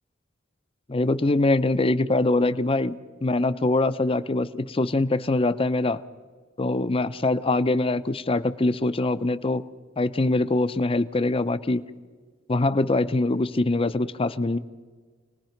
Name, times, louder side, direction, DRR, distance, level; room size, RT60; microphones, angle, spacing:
voice 1, 0.9-6.0 6.6-9.6 10.0-11.8 12.5-14.6, left 2 dB, 30° left, 12 dB, 0.7 m, -23 dB
27.5 x 19.5 x 5.8 m, 1.5 s
head